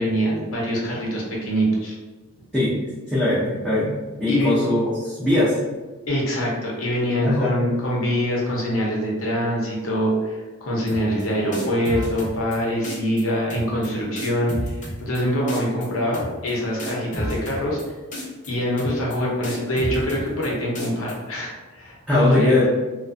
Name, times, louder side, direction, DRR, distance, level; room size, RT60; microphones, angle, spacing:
voice 1, 0.0-2.0 4.3-4.5 6.1-14.7 15.0-17.8 18.5-22.6, equal, 85° left, -3 dB, 0.8 m, -24 dB
voice 2, 3.1-3.9 4.2-5.6 7.2-7.6 22.1-22.7, left 2 dB, 5° right, -10 dB, 0.4 m, -20 dB
sound 1, 10.9-11.2 11.5-12.6 12.8-13.2 13.5-13.9 14.2-15.2 15.5-15.9 16.1-16.5 16.8-17.8 18.1-18.5 18.8-19.2 19.4-20.5 20.8-21.1, equal, 35° left, 0.7 m, -31 dB
2.4 x 2.2 x 2.5 m, 1.3 s
head